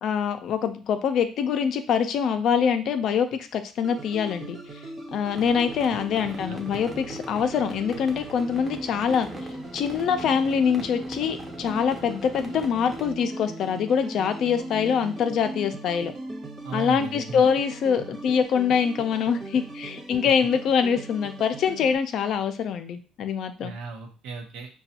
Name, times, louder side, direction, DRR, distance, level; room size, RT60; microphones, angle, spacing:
voice 1, 0.0-4.6 5.1-9.3 9.7-16.1 16.7-23.7, left 7 dB, 60° left, 8 dB, 0.4 m, -24 dB
sound 1, 3.8-21.9, right 2 dB, 35° right, 0.9 m, -39 dB
sound 2, 5.3-13.1, right 2 dB, 10° right, 0.6 m, -42 dB
voice 2, 5.9-6.8 16.6-17.6 23.6-24.7, right 4 dB, 85° right, 3 dB, 0.8 m, -37 dB
5.0 x 2.3 x 2.8 m, 0.37 s
cardioid pair, 120°, 0 cm